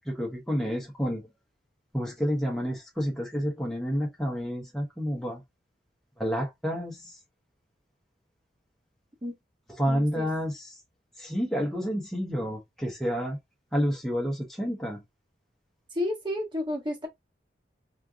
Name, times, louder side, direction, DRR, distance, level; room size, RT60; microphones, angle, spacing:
voice 1, 0.1-1.2 1.9-5.4 6.2-7.1 9.8-10.7 11.2-13.4 13.7-15.0, equal, ahead, 1.0 m, -29 dB
voice 2, 9.9-10.3 15.9-17.1, left 1 dB, 25° right, 1.6 m, -31 dB
3.8 x 3.2 x 2.4 m
head